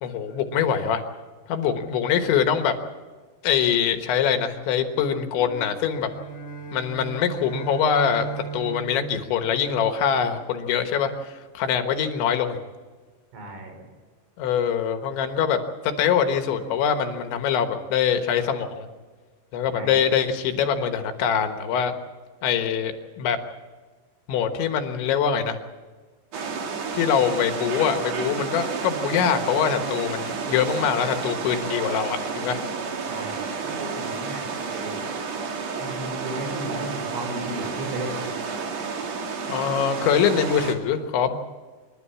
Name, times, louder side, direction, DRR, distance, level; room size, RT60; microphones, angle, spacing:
voice 1, 0.0-1.0 1.5-2.8 3.4-6.1 6.7-12.6 14.4-18.9 19.5-21.9 22.4-23.4 24.3-25.6 26.9-32.6 39.5-41.4, left 7 dB, 75° left, 7 dB, 3.5 m, -24 dB
sound 1, 5.4-10.1, right 5 dB, 25° left, 1.9 m, -37 dB
voice 2, 13.3-13.8 19.7-20.0 33.1-35.0 35.8-38.3, right 1 dB, 90° right, 3 dB, 7.5 m, -35 dB
sound 2, 26.3-40.7, right 5 dB, 55° right, 2.1 m, -31 dB
27.5 x 12.5 x 8.6 m, 1.4 s
omnidirectional pair, 5.5 m